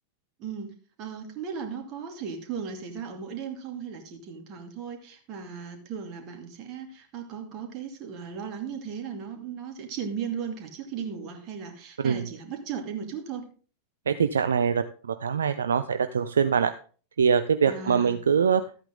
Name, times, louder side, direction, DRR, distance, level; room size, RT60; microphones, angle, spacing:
voice 1, 1.0-13.4 17.7-18.2, right 6 dB, 40° right, 5 dB, 2.4 m, -36 dB
voice 2, 14.1-16.7 17.2-18.6, right 6 dB, 70° right, 10 dB, 0.5 m, -23 dB
13.5 x 8.8 x 3.7 m, 0.38 s
figure-of-eight pair, 90°, 0 cm